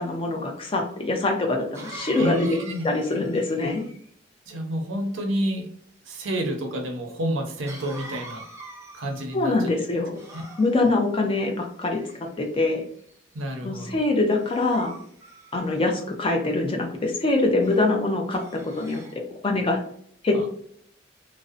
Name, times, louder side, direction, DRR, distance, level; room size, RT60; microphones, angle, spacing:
voice 1, 0.0-2.6 2.8-3.8 9.3-10.2 10.6-12.0 12.4-12.8 13.6-14.9 15.5-18.4 18.7-19.0 19.4-19.8 20.2-20.5, left 2 dB, 30° left, 2 dB, 0.4 m, -24 dB
Cough, 0.7-0.8 1.7-4.1 7.7-9.4 10.1-11.0 11.8-12.5 13.1-13.4 14.4-16.0 17.6-17.9 18.3-19.2, right 1 dB, 15° right, 0.6 m, -44 dB
voice 2, 2.2-2.8 4.5-5.7 6.1-8.4 8.9-9.5 10.3-10.4 13.3-14.0 20.3-20.4, equal, 85° right, 3 dB, 0.6 m, -29 dB
2.6 x 2.0 x 2.4 m, 0.64 s
head